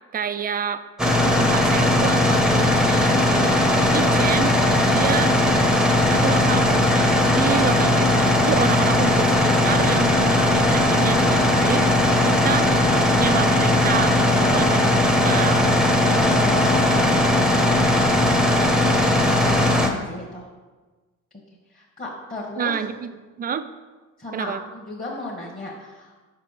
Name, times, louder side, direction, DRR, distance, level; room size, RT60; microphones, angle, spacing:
voice 1, 0.1-0.8 1.2-5.4 6.1-12.7 13.2-15.7 22.6-23.6 24.3-24.6, right 7 dB, 25° right, 11 dB, 0.3 m, -28 dB
sound 1, 1.0-19.9, left 1 dB, ahead, 0.7 m, -18 dB
voice 2, 16.0-17.9 19.3-20.5 21.7-22.7 24.2-26.3, left 1 dB, 20° left, -3 dB, 1.2 m, -33 dB
5.9 x 5.1 x 3.2 m, 1.3 s
hypercardioid pair, 50°, 41 cm